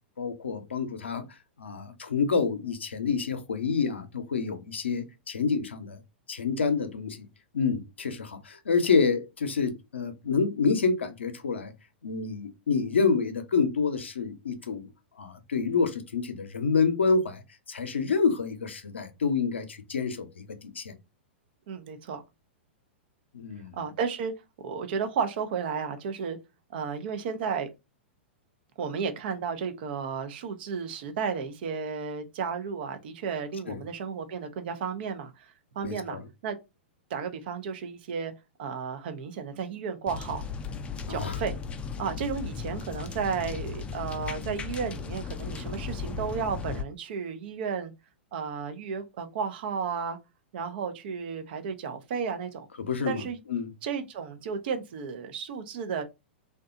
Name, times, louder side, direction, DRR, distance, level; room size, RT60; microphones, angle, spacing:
voice 1, 0.2-1.2 1.6-6.0 6.3-7.3 7.5-11.7 12.0-14.9 15.2-17.4 17.7-20.4 20.8-20.9 23.3-23.8 33.7-33.8 35.8-36.2 41.1-41.4 52.8-53.2 53.5-53.7, left 5 dB, 85° left, 0.6 m, -28 dB
voice 2, 21.7-22.2 23.7-24.3 24.6-26.4 26.7-27.7 28.8-35.5 35.7-36.6 37.1-38.3 38.6-40.4 41.1-41.6 42.0-47.9 48.3-50.2 50.5-52.7 53.0-53.4 53.8-56.0, right 6 dB, 60° right, 0.5 m, -33 dB
sound 1, 40.1-46.8, left 5 dB, 20° left, 0.4 m, -36 dB
2.7 x 2.2 x 2.4 m
hypercardioid pair, 110°, 6 cm